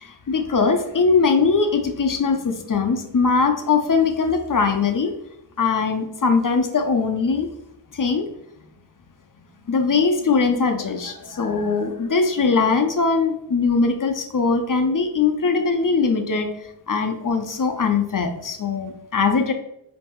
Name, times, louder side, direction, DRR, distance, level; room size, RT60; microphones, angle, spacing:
voice 1, 0.0-5.1 5.6-7.5 7.9-8.3 9.7-16.5 16.9-19.5, left 4 dB, 50° left, 5 dB, 0.5 m, -21 dB
5.3 x 2.7 x 2.3 m, 0.80 s
wide cardioid pair, 50°, 43 cm